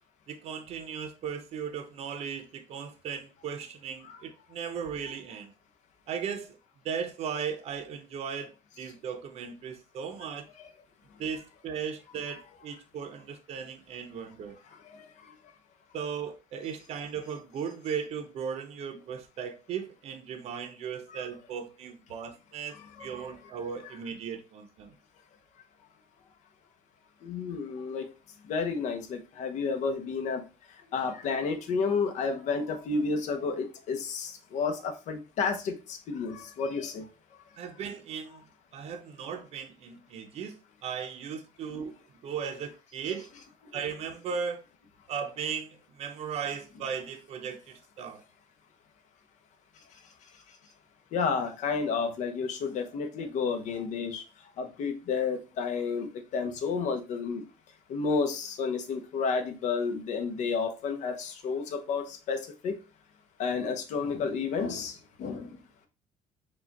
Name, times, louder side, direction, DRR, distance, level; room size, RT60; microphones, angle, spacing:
voice 1, 0.3-5.5 6.1-6.6 6.8-10.4 11.2-14.5 15.9-24.9 37.6-38.4 38.7-41.9 42.2-43.3 43.7-44.6 45.1-48.2, right 7 dB, 55° right, 0.6 m, -37 dB
voice 2, 14.9-15.3 21.1-21.2 22.7-23.3 27.2-28.1 28.5-30.4 30.9-37.0 43.1-43.2 51.1-54.2 54.6-57.4 57.9-62.8 63.4-65.6, left 5 dB, 65° left, 0.9 m, -31 dB
4.9 x 2.4 x 4.0 m
cardioid pair, 150°, 13 cm